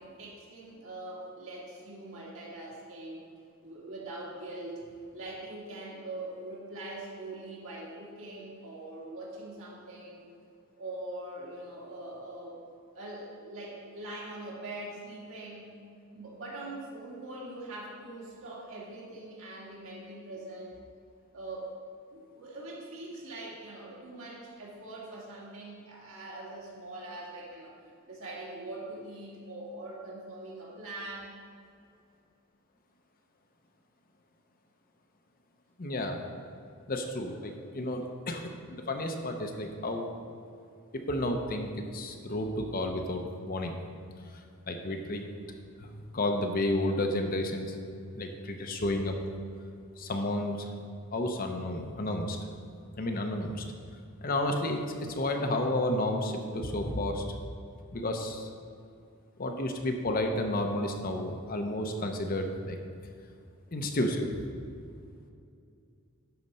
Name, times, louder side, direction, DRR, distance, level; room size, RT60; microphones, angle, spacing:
voice 1, 0.0-3.3 3.6-10.2 10.8-12.6 12.9-15.7 16.1-20.8 21.3-21.7 22.1-27.7 28.1-31.3, right 2 dB, 65° right, -4 dB, 2.2 m, -42 dB
voice 2, 35.8-36.2 36.9-40.1 40.9-43.8 44.7-45.3 45.8-47.8 48.1-49.1 50.0-50.7 51.1-52.4 53.0-53.6 54.2-57.2 57.9-58.5 59.4-62.8 63.7-64.4, left 1 dB, 40° left, 4 dB, 0.7 m, -31 dB
11.5 x 4.3 x 5.4 m, 2.4 s
head